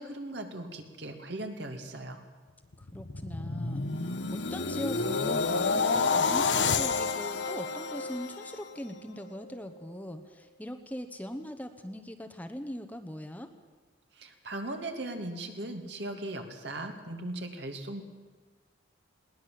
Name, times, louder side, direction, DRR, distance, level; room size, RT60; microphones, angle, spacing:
voice 1, 0.0-2.2 14.1-18.0, right 1 dB, 65° right, 5 dB, 2.6 m, -38 dB
sound 1, 2.7-9.0 9.4-9.7, left 4 dB, 75° left, 1.1 m, -29 dB
voice 2, 2.9-13.5, equal, 10° left, 6 dB, 1.0 m, -40 dB
21.0 x 18.5 x 7.7 m, 1.4 s
head